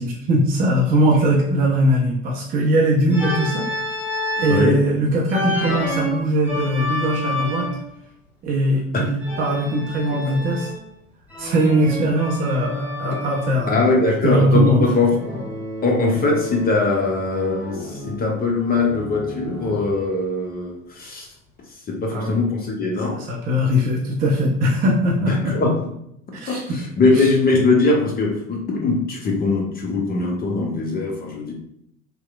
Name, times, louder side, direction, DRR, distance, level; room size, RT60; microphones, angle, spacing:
voice 1, 0.0-3.7 4.4-7.7 8.4-10.7 11.4-13.7 14.2-14.9 22.1-22.4 23.1-25.6 26.3-26.8 27.1-27.3, equal, 25° right, -3 dB, 0.5 m, -20 dB
Organ, 3.1-4.7 5.3-7.9 9.2-10.9 11.3-13.6 15.2-17.0 17.3-20.0, equal, 5° right, 1.2 m, -30 dB
voice 2, 13.7-15.1 15.8-21.3 21.9-23.2 25.3-25.7 26.5-26.6 27.0-31.5, left 3 dB, 25° left, -1 dB, 0.6 m, -21 dB
2.9 x 2.0 x 2.3 m, 0.75 s
figure-of-eight pair, 70°, 38 cm